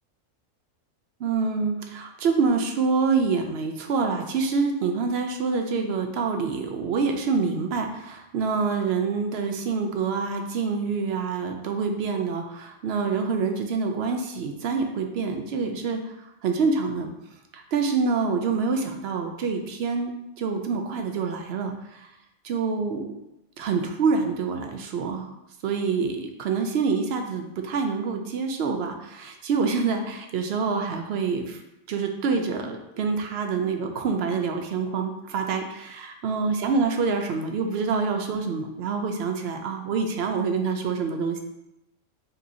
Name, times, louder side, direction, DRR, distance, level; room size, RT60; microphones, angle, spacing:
voice 1, 1.2-16.0 16.4-17.1 17.5-22.1 22.4-23.1 23.6-25.3 25.6-31.6 31.9-41.4, right 5 dB, 65° right, 4 dB, 0.7 m, -26 dB
5.4 x 2.8 x 2.6 m, 0.87 s
omnidirectional pair, 1.3 m